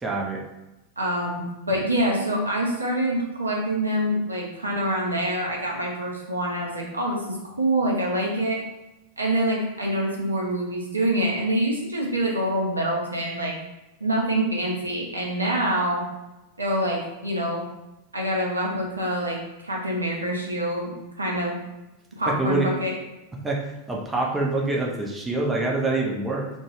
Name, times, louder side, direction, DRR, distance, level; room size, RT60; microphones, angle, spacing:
voice 1, 0.0-0.4 22.3-22.7 23.4-26.5, right 2 dB, 10° right, -2 dB, 0.5 m, -26 dB
voice 2, 1.0-8.6 9.2-13.5 14.0-16.0 16.6-17.6 18.1-19.4 19.6-20.9 21.2-21.6 22.2-23.0, right 1 dB, 80° right, -2 dB, 0.6 m, -25 dB
2.2 x 2.2 x 3.0 m, 0.98 s
figure-of-eight pair, 90°, 0 cm